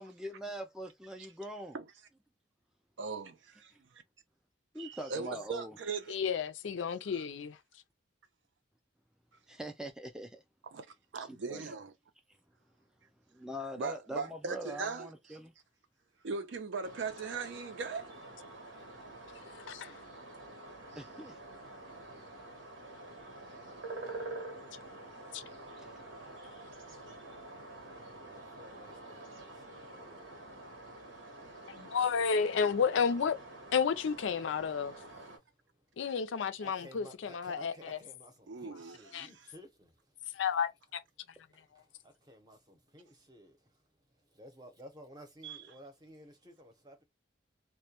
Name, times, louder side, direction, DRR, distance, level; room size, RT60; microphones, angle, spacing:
voice 1, 0.0-1.8 4.7-5.8 9.5-10.4 11.3-11.7 13.3-15.5 21.0-21.3 25.8-25.9, equal, 5° right, 0.3 m, -43 dB
voice 2, 3.0-3.7 4.8-6.2 10.7-10.9 11.1-11.9 13.8-15.4 16.2-18.1 38.5-39.0 45.4-45.7, right 4 dB, 70° right, 0.5 m, -39 dB
voice 3, 6.1-7.6 19.5-20.0 25.3-25.4 31.7-33.4 33.7-35.0 36.0-38.0 39.1-39.3 40.3-41.0 41.7-41.8, left 6 dB, 80° left, 0.4 m, -32 dB
sound 1, 16.8-35.4, right 2 dB, 90° right, 1.0 m, -48 dB
voice 4, 27.3-31.1 35.3-35.9 36.6-40.4 41.5-47.0, equal, 20° right, 0.7 m, -56 dB
2.2 x 2.1 x 2.8 m
head